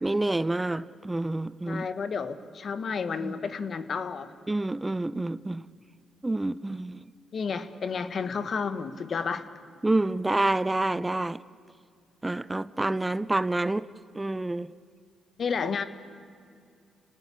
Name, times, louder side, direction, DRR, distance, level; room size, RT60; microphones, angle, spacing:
voice 1, 0.0-1.9 3.2-3.3 4.5-5.6 6.2-7.0 9.8-11.4 12.2-13.8 14.2-14.7, right 2 dB, 20° right, 0.6 m, -28 dB
voice 2, 1.7-4.3 7.3-9.5 15.4-15.8, left 5 dB, 55° left, 1.4 m, -31 dB
29.5 x 18.5 x 8.5 m
supercardioid pair, 60°, 0 cm